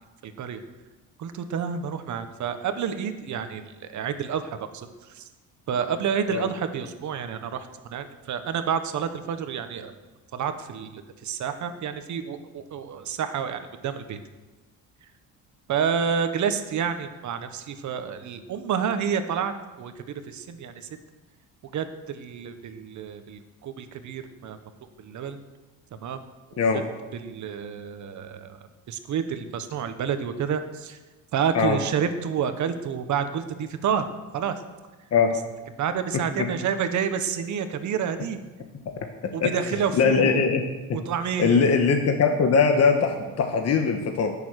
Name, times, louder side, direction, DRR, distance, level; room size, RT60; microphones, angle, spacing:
voice 1, 0.2-0.6 1.2-5.3 5.7-9.9 10.3-14.2 15.7-19.9 20.3-20.9 21.7-24.6 25.0-25.4 25.9-26.2 26.5-26.8 27.1-28.6 28.9-31.0 31.3-34.1 34.3-34.6 35.8-38.4 39.3-40.4 40.9-41.8, right 7 dB, 55° right, 9 dB, 1.3 m, -29 dB
voice 2, 39.0-39.5 39.9-40.6 40.9-41.0 41.4-44.3, left 5 dB, 45° left, 4 dB, 1.4 m, -21 dB
18.5 x 7.2 x 6.5 m, 1.2 s
cardioid pair, 135°, 35 cm